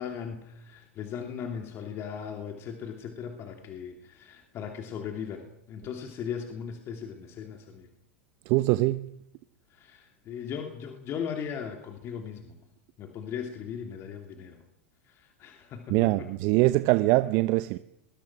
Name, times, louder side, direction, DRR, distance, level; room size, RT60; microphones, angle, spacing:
voice 1, 0.0-7.9 9.7-12.5 13.0-14.6 15.1-16.3, left 7 dB, 40° left, 3.0 m, -38 dB
voice 2, 8.5-9.1 15.9-17.8, right 19 dB, 50° right, 0.8 m, -23 dB
26.0 x 21.5 x 6.2 m
hypercardioid pair, 100°, 7 cm